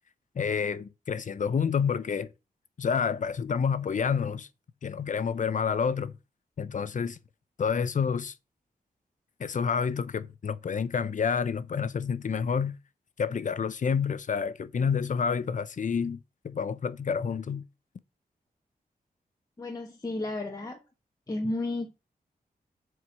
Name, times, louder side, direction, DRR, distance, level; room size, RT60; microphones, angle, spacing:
voice 1, 0.3-2.3 2.8-4.5 4.8-6.1 6.6-7.2 7.6-8.3 9.4-12.8 13.2-17.6, left 6 dB, 55° left, 0.7 m, -29 dB
voice 2, 19.6-20.8 21.3-21.9, left 2 dB, 25° left, 1.2 m, -32 dB
8.0 x 4.7 x 7.3 m
wide cardioid pair, 150°, 16 cm